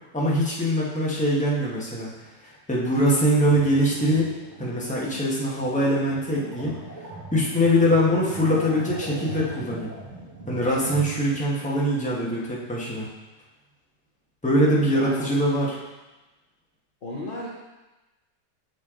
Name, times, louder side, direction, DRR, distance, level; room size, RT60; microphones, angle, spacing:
voice 1, 0.1-2.1 2.4-4.3 4.6-6.7 7.3-9.9 10.5-13.1 14.4-15.8, equal, 5° left, -5 dB, 1.0 m, -23 dB
sound 1, 3.5-11.4, right 2 dB, 40° right, 2.3 m, -39 dB
voice 2, 14.9-15.4 17.0-17.5, left 1 dB, 45° left, -3 dB, 0.8 m, -35 dB
6.8 x 5.3 x 3.7 m, 1.1 s
omnidirectional pair, 1.8 m